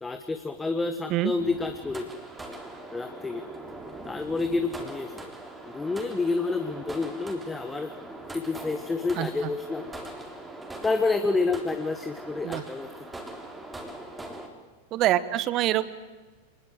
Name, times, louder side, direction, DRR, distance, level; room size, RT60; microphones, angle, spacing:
voice 1, 0.0-2.2 2.9-3.4 4.0-5.3 5.7-7.9 8.3-9.8 10.8-12.9, left 3 dB, 10° left, 8 dB, 1.4 m, -29 dB
sound 1, 1.4-14.5, right 2 dB, 10° right, 3.7 m, -42 dB
voice 2, 14.9-15.9, right 14 dB, 35° right, 16 dB, 1.3 m, -25 dB
26.0 x 21.0 x 7.8 m, 1.3 s
figure-of-eight pair, 90°, 0 cm